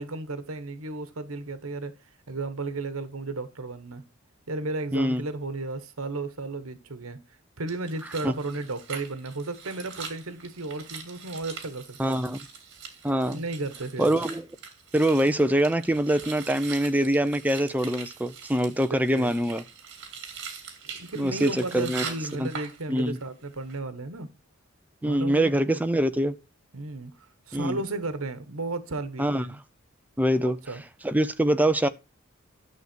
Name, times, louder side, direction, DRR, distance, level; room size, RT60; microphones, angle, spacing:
voice 1, 0.0-1.9 2.3-4.1 4.5-7.2 7.6-12.3 13.3-14.2 19.1-19.3 21.0-24.3 25.0-25.8 26.7-29.6 30.4-30.8, right 3 dB, 80° right, 1.3 m, -34 dB
voice 2, 4.9-5.2 8.2-8.3 12.0-12.4 13.0-13.4 14.0-14.5 14.9-19.6 21.2-22.0 22.4-22.5 22.9-23.2 25.0-26.4 27.5-27.8 29.2-29.4 30.2-30.6 31.0-31.9, right 1 dB, 10° right, 0.7 m, -24 dB
sound 1, 7.7-23.3 23.5-23.8, right 6 dB, 60° right, 2.5 m, -42 dB
11.0 x 6.8 x 4.5 m
head